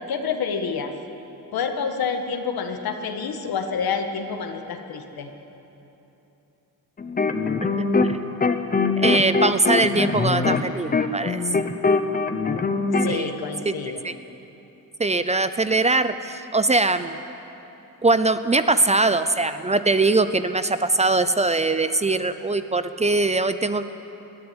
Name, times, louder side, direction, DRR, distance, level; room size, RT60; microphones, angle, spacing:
voice 1, 0.1-0.9 1.5-5.3 12.9-14.0, left 6 dB, 80° left, 5 dB, 1.8 m, -28 dB
sound 1, 7.0-8.1 8.4-13.1, left 4 dB, 25° left, 0.9 m, -22 dB
voice 2, 9.0-11.4 13.1-13.3 13.6-13.7 14.0-14.2 15.0-17.2 18.0-23.8, right 3 dB, 20° right, 11 dB, 0.5 m, -21 dB
20.5 x 14.0 x 9.8 m, 3.0 s
wide cardioid pair, 145°, 36 cm